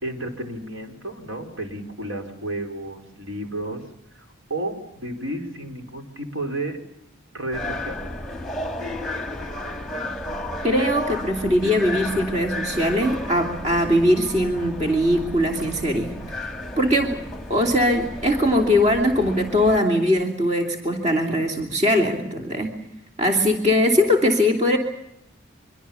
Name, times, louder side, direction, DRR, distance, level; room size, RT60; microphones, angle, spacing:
voice 1, 0.0-3.8 4.5-6.8 7.3-8.0, right 1 dB, 75° right, 4 dB, 4.6 m, -32 dB
sound 1, 7.5-19.8, left 1 dB, ahead, 2.3 m, -33 dB
voice 2, 10.6-16.2 16.8-17.2 17.5-22.8 23.2-24.8, left 1 dB, 35° right, 3 dB, 3.1 m, -21 dB
25.0 x 23.5 x 7.1 m, 0.78 s
head